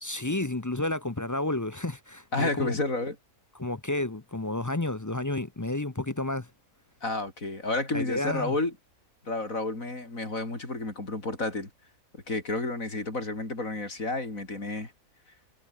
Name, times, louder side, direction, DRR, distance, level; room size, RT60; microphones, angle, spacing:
voice 1, 0.0-2.8 3.5-6.5 7.9-8.5, left 2 dB, 20° left, 0.5 m, -31 dB
voice 2, 2.3-3.2 7.0-8.7 9.2-11.7 12.3-14.9, left 2 dB, 60° left, 5.5 m, -31 dB
omnidirectional pair, 1.6 m